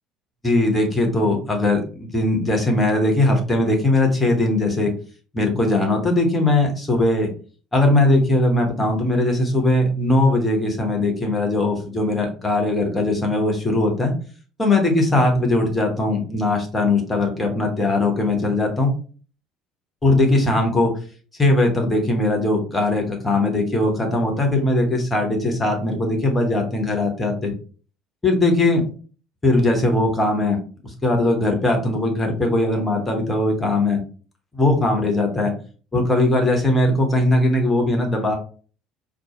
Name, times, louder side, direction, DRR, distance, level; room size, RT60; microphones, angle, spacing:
voice 1, 0.4-4.9 5.3-7.3 7.7-14.1 14.6-18.9 20.0-20.9 21.4-27.5 28.2-28.8 29.4-30.6 30.8-34.0 34.5-35.5 35.9-38.4, left 2 dB, 15° left, 1 dB, 1.1 m, -20 dB
4.5 x 2.0 x 3.0 m, 0.39 s
figure-of-eight pair, 55°, 0 cm